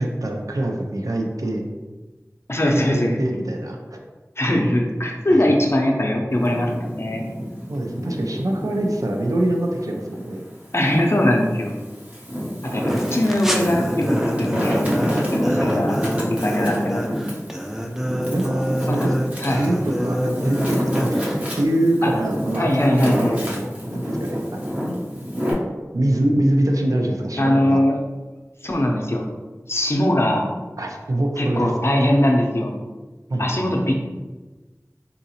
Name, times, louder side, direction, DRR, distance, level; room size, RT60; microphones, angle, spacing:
voice 1, 0.0-1.7 2.9-4.0 5.3-5.4 7.7-10.4 12.6-13.0 15.8-16.1 18.3-19.1 19.6-24.8 25.9-27.8 30.8-31.7 33.3-33.7, right 1 dB, 80° right, 1 dB, 0.5 m, -24 dB
voice 2, 2.5-3.1 4.4-7.2 10.7-11.7 12.6-14.9 15.3-15.9 16.3-17.4 18.9-19.0 19.4-19.7 22.0-22.1 22.6-23.4 27.4-27.9 28.6-29.3 29.7-30.4 31.4-32.7 33.4-33.9, left 1 dB, 50° left, 0 dB, 0.6 m, -21 dB
Wind, 6.3-9.2 9.7-11.0 11.6-25.5, equal, 25° right, 0.8 m, -27 dB
sound 1, 12.9-21.7, equal, 5° right, 0.4 m, -27 dB
3.8 x 2.5 x 2.8 m, 1.2 s
wide cardioid pair, 40°, 6 cm